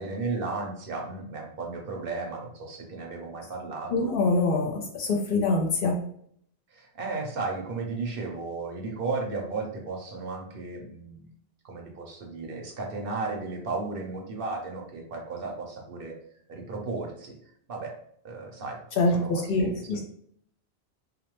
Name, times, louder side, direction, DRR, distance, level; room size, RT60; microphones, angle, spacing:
voice 1, 0.0-4.1 6.7-11.3 11.6-16.2 16.5-17.4 17.7-18.0 18.2-18.8 19.1-20.0, right 3 dB, 65° right, 0 dB, 0.8 m, -34 dB
voice 2, 3.9-4.7 5.0-5.9 19.0-20.0, left 2 dB, 65° left, 1 dB, 0.7 m, -24 dB
2.4 x 2.1 x 2.9 m, 0.65 s
omnidirectional pair, 1.1 m